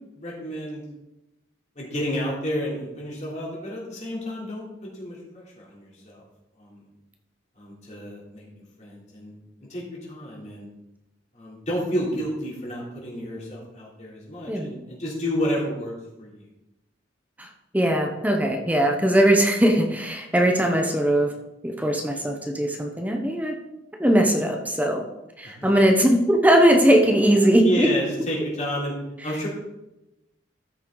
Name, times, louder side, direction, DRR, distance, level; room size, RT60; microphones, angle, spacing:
voice 1, 0.1-0.8 1.7-6.2 6.6-6.9 7.6-9.3 9.7-10.7 11.3-15.9 16.2-16.5 25.4-25.7 27.6-28.9 29.2-29.5, equal, 35° left, -5 dB, 3.3 m, -31 dB
voice 2, 14.5-14.8 17.4-17.5 17.7-21.3 21.6-23.6 24.0-25.0 25.4-27.9, right 1 dB, 10° right, 2 dB, 0.9 m, -20 dB
13.5 x 6.3 x 4.0 m, 0.94 s
head